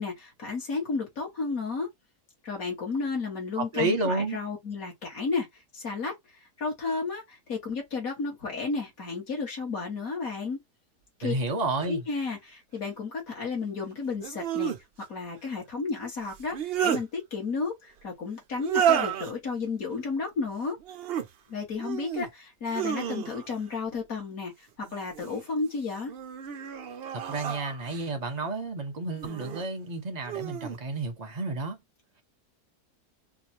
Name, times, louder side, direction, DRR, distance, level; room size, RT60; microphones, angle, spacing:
voice 1, 0.0-1.9 2.4-5.5 5.7-6.1 6.6-10.6 11.2-11.3 11.8-14.7 15.1-20.8 21.5-26.1, left 4 dB, 55° left, 2.1 m, -32 dB
voice 2, 3.6-4.4 11.2-12.0 27.1-31.8, right 2 dB, 35° right, 0.7 m, -31 dB
sound 1, 11.8-11.9 14.2-14.8 16.3-17.0 18.6-19.3 20.8-21.3 21.8-22.3 22.7-23.6 24.8-25.5 26.1-28.1 29.2-29.7 30.2-30.8, right 9 dB, 90° right, 0.5 m, -31 dB
4.7 x 2.4 x 2.8 m
omnidirectional pair, 1.8 m